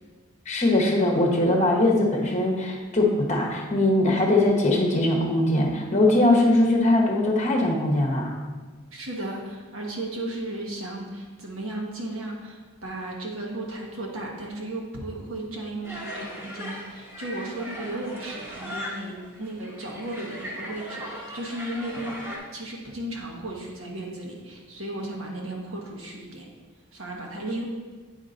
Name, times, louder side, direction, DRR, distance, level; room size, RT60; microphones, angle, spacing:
voice 1, 0.5-8.3, left 1 dB, 30° left, 0 dB, 1.0 m, -21 dB
voice 2, 8.9-22.2 22.5-26.5 26.9-27.7, right 1 dB, 65° right, -1 dB, 1.3 m, -35 dB
sound 1, 15.8-22.4, equal, 10° right, 1.1 m, -38 dB
8.5 x 5.4 x 2.5 m, 1.4 s
head